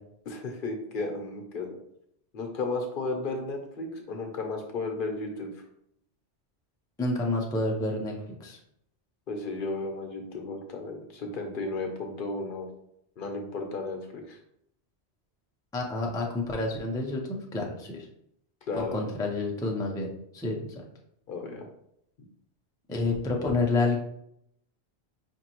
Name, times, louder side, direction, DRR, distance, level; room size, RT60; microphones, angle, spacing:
voice 1, 0.3-1.8 2.3-5.5 9.3-12.7 13.2-14.4 18.7-19.0 21.3-21.7, left 3 dB, 55° left, 3 dB, 0.8 m, -34 dB
voice 2, 7.0-8.1 8.4-8.6 15.7-18.1 18.7-20.1 20.3-20.8 22.9-24.0, left 2 dB, 5° left, 0 dB, 0.3 m, -29 dB
5.1 x 2.6 x 2.9 m, 0.74 s
omnidirectional pair, 1.1 m